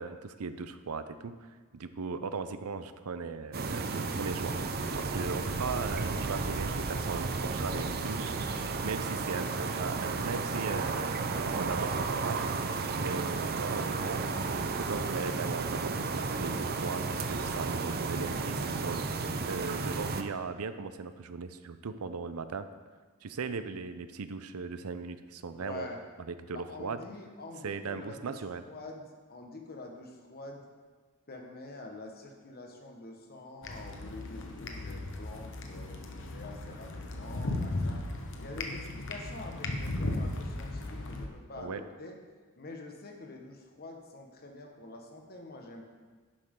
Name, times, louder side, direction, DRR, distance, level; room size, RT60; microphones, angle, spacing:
voice 1, 0.0-4.6 5.0-8.4 8.8-12.4 13.0-14.3 14.7-22.7 23.2-25.9 26.3-27.0 27.6-28.6 41.6-41.8, right 4 dB, 85° right, 11 dB, 0.6 m, -38 dB
sound 1, 3.5-20.2, right 4 dB, 45° right, 0.7 m, -33 dB
voice 2, 25.5-26.0 26.5-28.4 28.7-30.6 31.3-38.0 38.4-42.2 42.6-45.9, left 2 dB, 45° left, 2 dB, 1.3 m, -46 dB
sound 2, 33.6-41.3, left 2 dB, 60° left, 1.1 m, -36 dB
11.0 x 8.9 x 3.7 m, 1.4 s
head